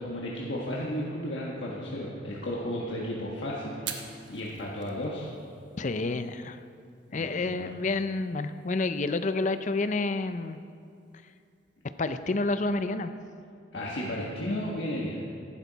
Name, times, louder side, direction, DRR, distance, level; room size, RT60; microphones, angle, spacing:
voice 1, 0.0-3.8 4.3-5.3 7.1-7.7 13.7-15.2, left 1 dB, 70° left, -4 dB, 1.4 m, -33 dB
Fire, 3.7-12.9, right 7 dB, 70° right, 1.2 m, -49 dB
voice 2, 5.8-6.6 7.1-10.6 12.0-13.1, left 3 dB, 40° left, 11 dB, 0.5 m, -29 dB
14.5 x 11.5 x 4.1 m, 2.4 s
head